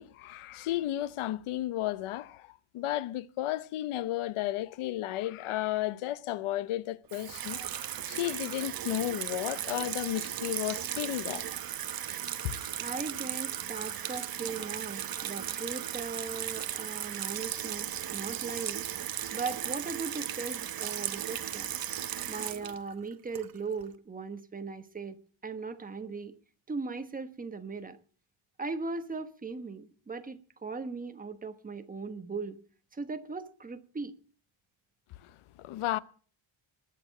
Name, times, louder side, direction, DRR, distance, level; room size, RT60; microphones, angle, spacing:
voice 1, 0.0-11.4 12.4-12.5 35.2-36.0, left 14 dB, 90° left, 0.9 m, -33 dB
Water tap faucet / Sink (filling or washing), 7.1-23.8, right 10 dB, 45° right, 1.0 m, -36 dB
voice 2, 12.8-18.8 19.3-21.7 22.3-25.2 25.4-26.3 26.7-28.0 28.6-32.6 32.9-34.1, right 4 dB, 15° right, 1.2 m, -38 dB
20.5 x 7.0 x 7.3 m
cardioid pair, 150°, 48 cm